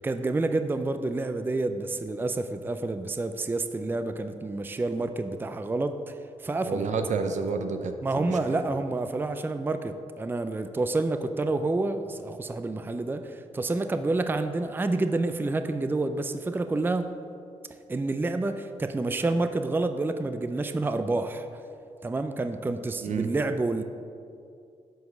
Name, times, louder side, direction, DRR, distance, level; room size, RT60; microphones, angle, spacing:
voice 1, 0.0-6.9 8.0-17.1 17.9-21.5 22.0-23.8, right 2 dB, 15° right, 9 dB, 0.4 m, -28 dB
voice 2, 6.7-8.6 23.0-23.3, right 5 dB, 70° right, 7 dB, 0.8 m, -30 dB
7.9 x 5.1 x 6.6 m, 2.5 s
cardioid pair, 80°, 13 cm